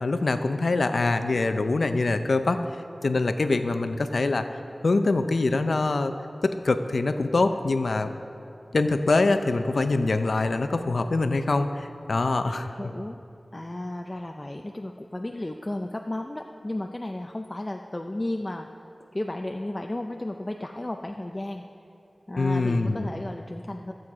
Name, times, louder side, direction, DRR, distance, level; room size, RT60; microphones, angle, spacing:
voice 1, 0.0-2.6 3.0-4.5 4.8-6.1 6.4-8.1 8.7-12.7 22.4-23.1, left 3 dB, 80° left, 8 dB, 0.5 m, -24 dB
voice 2, 12.8-13.2 13.5-18.7 19.1-21.6 22.3-23.9, left 1 dB, 30° left, 3 dB, 0.5 m, -33 dB
14.5 x 7.8 x 4.8 m, 2.8 s
wide cardioid pair, 60°, 0 cm